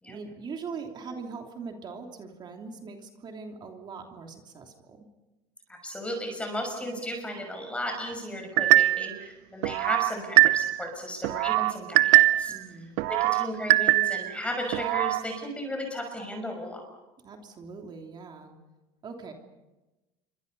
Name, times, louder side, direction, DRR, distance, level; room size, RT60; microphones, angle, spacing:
voice 1, 0.1-5.1 12.5-12.9 17.2-18.5 19.0-19.3, right 5 dB, 35° right, 2 dB, 3.1 m, -41 dB
voice 2, 5.7-12.5 13.1-16.8, equal, 10° left, 3 dB, 5.8 m, -35 dB
sound 1, 8.6-9.1 9.6-10.9 11.2-12.6 13.0-14.3 14.7-15.2, right 18 dB, 80° right, 0.8 m, -22 dB
28.5 x 24.5 x 5.5 m, 1.1 s
supercardioid pair, 120°, 13 cm